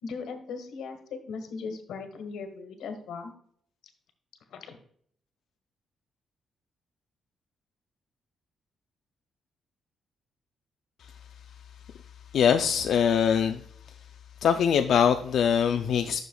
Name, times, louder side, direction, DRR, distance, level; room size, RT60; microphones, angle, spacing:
voice 1, 0.0-1.0 1.3-3.3 4.5-4.8, left 5 dB, 85° left, 6 dB, 1.4 m, -38 dB
voice 2, 12.3-13.6 14.4-16.2, left 7 dB, 55° left, 5 dB, 0.4 m, -23 dB
11.0 x 6.4 x 2.3 m, 0.63 s
cardioid pair, 175°, 0 cm